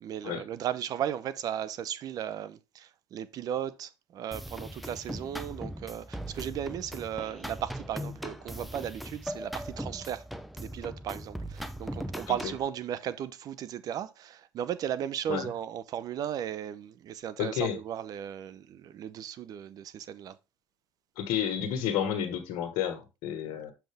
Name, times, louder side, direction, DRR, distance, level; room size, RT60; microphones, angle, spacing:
voice 1, 0.0-10.3 10.6-20.4, right 10 dB, 55° right, 0.8 m, -36 dB
sound 1, 4.3-12.7, equal, ahead, 0.8 m, -39 dB
voice 2, 17.4-17.8 21.1-23.7, left 9 dB, 70° left, 1.6 m, -31 dB
6.9 x 5.8 x 3.5 m
supercardioid pair, 90°, 8 cm